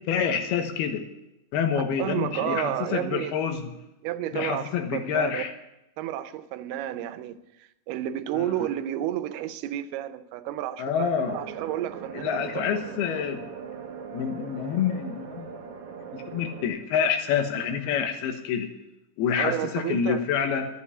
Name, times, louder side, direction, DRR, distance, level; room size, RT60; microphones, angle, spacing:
voice 1, 0.1-1.0 1.5-3.7 4.3-5.5 8.4-8.5 10.8-11.4 12.1-13.5 14.1-15.5 16.1-18.7 19.2-20.7, left 7 dB, 85° left, 3.2 m, -27 dB
voice 2, 1.7-3.4 4.0-5.4 6.0-12.6 19.4-20.3, right 12 dB, 85° right, 2.7 m, -31 dB
sound 1, 11.2-16.7, right 6 dB, 70° right, 1.4 m, -40 dB
11.5 x 7.8 x 9.7 m
omnidirectional pair, 4.5 m